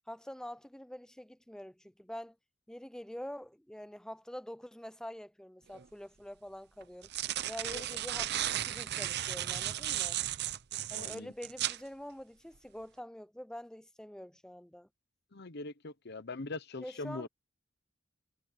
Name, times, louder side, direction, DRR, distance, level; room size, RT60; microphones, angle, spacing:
voice 1, 0.1-2.4 2.7-7.1 7.5-10.2 10.9-14.9 16.8-17.3, equal, 5° left, 0.5 m, -46 dB
sound 1, 5.7-5.8 6.8-11.8, right 12 dB, 55° right, 0.7 m, -35 dB
voice 2, 10.9-11.3 15.3-17.3, left 3 dB, 55° left, 1.0 m, -42 dB
head